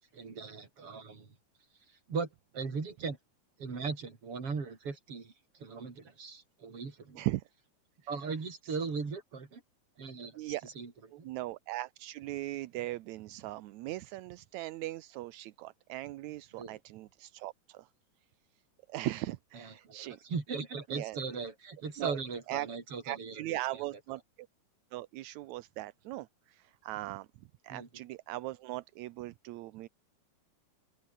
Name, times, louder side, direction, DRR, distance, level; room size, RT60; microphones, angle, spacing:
voice 1, 0.0-1.4 1.9-3.2 3.6-7.2 8.1-9.6 10.0-10.9 11.2-11.3 16.5-16.8 19.5-23.8 27.7-27.9, right 5 dB, 45° right, 4.9 m, -39 dB
voice 2, 11.1-17.9 18.9-20.2 20.9-21.2 22.0-22.2 22.5-22.7 23.0-24.5 24.9-27.3 27.6-29.9, right 17 dB, 75° right, 2.0 m, -39 dB
open air
omnidirectional pair, 3.5 m